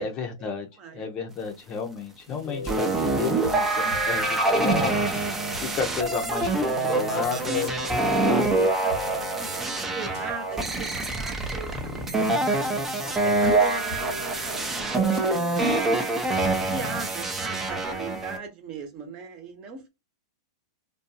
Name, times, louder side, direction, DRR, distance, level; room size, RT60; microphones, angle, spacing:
voice 1, 0.0-7.7 8.3-8.7, left 5 dB, 30° left, 0.7 m, -32 dB
voice 2, 0.8-1.3 5.2-5.7 7.4-12.8 13.2-15.8 16.6-19.9, right 4 dB, 35° right, 0.9 m, -39 dB
sound 1, 2.3-17.0, left 4 dB, 65° left, 1.0 m, -39 dB
sound 2, 2.7-18.4, right 2 dB, 10° right, 0.6 m, -25 dB
2.5 x 2.3 x 2.6 m
hypercardioid pair, 120°, 2 cm